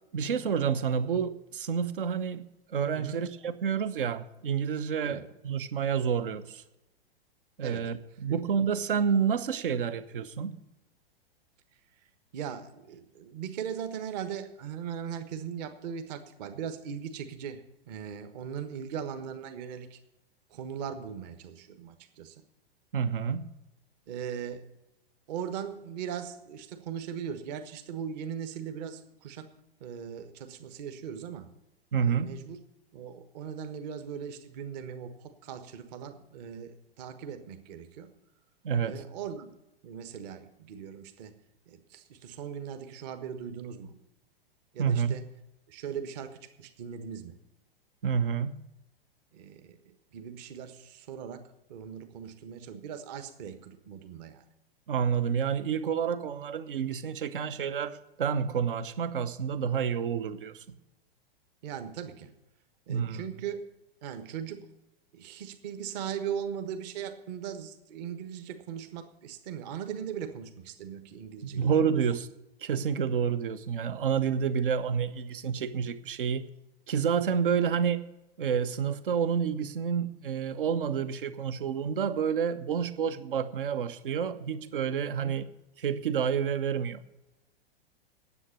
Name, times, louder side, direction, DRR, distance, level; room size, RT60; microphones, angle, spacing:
voice 1, 0.1-6.6 7.6-10.6 22.9-23.5 31.9-32.3 38.6-39.0 44.8-45.2 48.0-48.7 54.9-60.6 62.9-63.2 71.4-72.3 72.6-76.4 76.9-78.0 78.4-85.5 85.8-87.0, right 7 dB, 60° right, 13 dB, 1.0 m, -29 dB
voice 2, 12.3-20.0 20.5-22.4 24.1-24.6 25.3-29.5 29.8-31.5 32.0-32.6 32.9-38.1 38.8-39.5 39.8-41.3 41.7-44.0 44.7-45.3 45.7-47.4 49.3-51.4 51.7-54.4 61.6-62.3 62.9-63.6 64.0-64.7 65.1-71.7 85.1-85.3, right 8 dB, 45° right, 9 dB, 1.3 m, -39 dB
9.9 x 8.1 x 9.7 m, 0.93 s
figure-of-eight pair, 105°, 30 cm